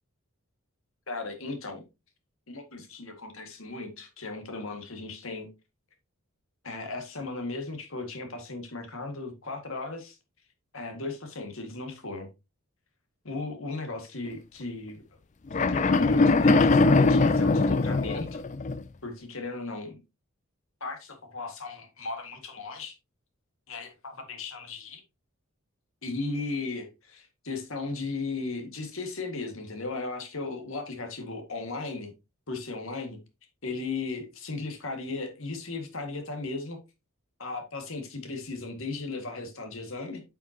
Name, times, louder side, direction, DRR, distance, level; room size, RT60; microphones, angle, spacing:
voice 1, 1.1-1.8 2.5-5.5 6.6-10.2 10.7-12.3 13.2-15.0 15.5-18.4 19.0-20.0 20.8-22.9 23.7-25.0 26.0-32.1 32.5-33.2 33.6-36.8 37.4-40.2, left 3 dB, 65° left, 1.9 m, -36 dB
sound 1, 15.5-18.8, left 3 dB, 35° left, 0.4 m, -21 dB
9.4 x 5.7 x 2.8 m
head